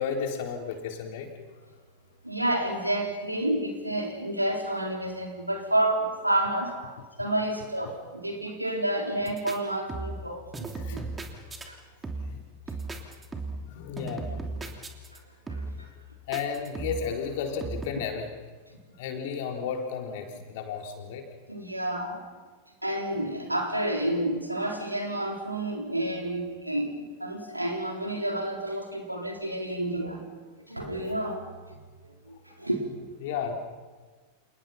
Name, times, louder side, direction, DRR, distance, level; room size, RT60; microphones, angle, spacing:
voice 1, 0.0-1.5 7.8-7.9 10.6-11.0 11.4-11.6 12.3-12.4 13.7-14.7 16.3-18.3 19.0-21.3 31.0-31.1 33.2-33.5, left 6 dB, 50° left, 3 dB, 3.8 m, -33 dB
voice 2, 2.2-6.7 7.2-11.0 11.7-11.8 15.5-15.6 21.5-22.2 22.8-30.2 30.6-31.4 32.0-32.9, right 1 dB, 85° right, 2 dB, 4.2 m, -30 dB
sound 1, 9.3-9.6 9.9-10.3 10.5-11.7 12.0-12.4 12.7-13.7 14.0-15.2 15.5-15.8 16.3-17.1 17.6-17.9, right 3 dB, 15° right, 3.1 m, -36 dB
29.5 x 28.5 x 5.9 m, 1.4 s
figure-of-eight pair, 90°, 0 cm